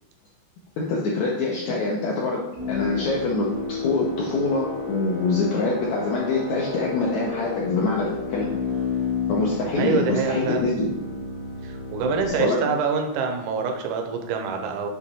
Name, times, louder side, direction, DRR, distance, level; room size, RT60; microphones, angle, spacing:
voice 1, 0.8-2.4 2.7-8.5 9.3-10.9 12.4-12.6, left 3 dB, 75° left, -3 dB, 1.7 m, -25 dB
sound 1, 2.6-12.3, left 4 dB, 50° left, 0.7 m, -31 dB
voice 2, 9.6-10.6 11.6-14.9, right 5 dB, 75° right, 4 dB, 1.8 m, -26 dB
7.4 x 3.0 x 4.2 m, 0.89 s
omnidirectional pair, 4.1 m